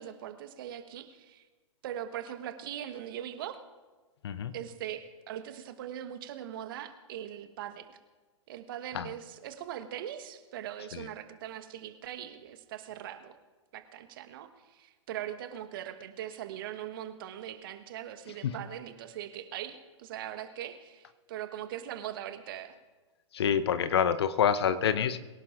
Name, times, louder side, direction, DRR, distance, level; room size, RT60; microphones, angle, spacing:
voice 1, 0.0-1.4 1.8-3.6 4.5-7.9 8.5-13.3 13.7-22.8, right 11 dB, 45° right, 10 dB, 1.3 m, -41 dB
voice 2, 4.2-4.5 8.9-9.1 10.9-11.1 18.4-18.6 23.3-25.2, left 8 dB, 55° left, 13 dB, 0.8 m, -27 dB
23.5 x 17.0 x 2.5 m, 1.3 s
figure-of-eight pair, 110°, 16 cm